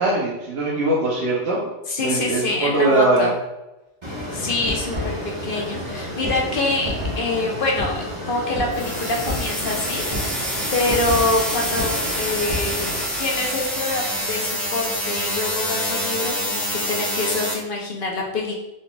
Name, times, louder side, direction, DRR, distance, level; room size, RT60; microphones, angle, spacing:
voice 1, 0.0-1.6 2.0-3.3, right 2 dB, 65° right, -5 dB, 1.0 m, -21 dB
voice 2, 1.9-3.3 4.3-10.1 10.7-18.5, left 2 dB, 55° left, -1 dB, 0.8 m, -25 dB
sound 1, 4.0-13.0, left 1 dB, 25° right, 1.1 m, -30 dB
sound 2, 8.7-17.5, equal, ahead, 0.6 m, -26 dB
4.2 x 3.8 x 2.2 m, 0.96 s
omnidirectional pair, 1.2 m